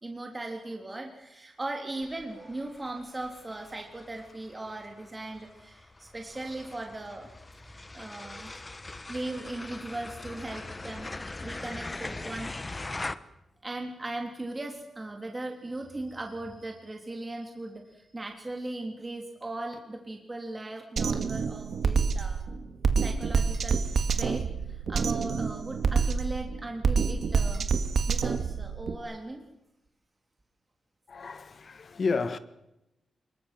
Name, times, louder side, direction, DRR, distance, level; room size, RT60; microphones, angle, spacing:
voice 1, 0.0-7.3 7.9-11.1 11.4-12.8 13.6-22.4 23.0-27.7 28.1-29.4, right 2 dB, 20° right, 3.3 m, -38 dB
sound 1, 2.0-13.1, left 2 dB, 25° left, 1.2 m, -41 dB
Drum kit, 21.0-28.9, right 5 dB, 65° right, 2.0 m, -27 dB
voice 2, 31.1-32.4, left 4 dB, 50° left, 1.6 m, -31 dB
25.0 x 22.0 x 7.6 m
wide cardioid pair, 105°, 0 cm